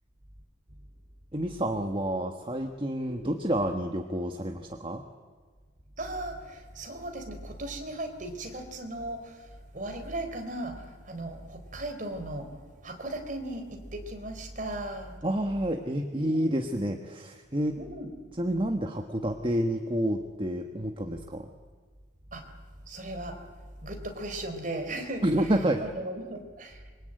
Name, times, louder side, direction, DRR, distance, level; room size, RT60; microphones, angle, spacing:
voice 1, 1.3-5.0 15.2-17.8 18.3-21.5 25.2-25.8, right 1 dB, 25° right, 5 dB, 1.4 m, -29 dB
voice 2, 6.0-12.5 12.8-15.2 16.1-16.7 17.8-18.1 22.3-22.4 22.9-23.4 23.8-25.5 25.8-26.8, right 1 dB, 45° right, 5 dB, 3.9 m, -37 dB
26.5 x 23.5 x 9.1 m, 1.5 s
head